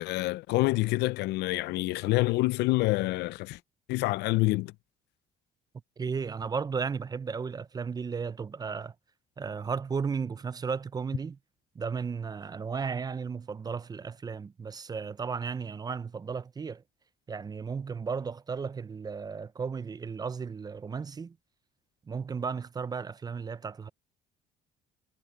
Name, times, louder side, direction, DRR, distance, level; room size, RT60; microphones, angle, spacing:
voice 1, 0.0-3.6 3.9-4.7, left 20 dB, 85° left, 0.5 m, -27 dB
voice 2, 6.0-8.9 9.4-11.4 11.8-16.8 17.3-21.4 22.1-23.9, right 5 dB, 25° right, 0.5 m, -34 dB
cardioid pair, 110°, 17 cm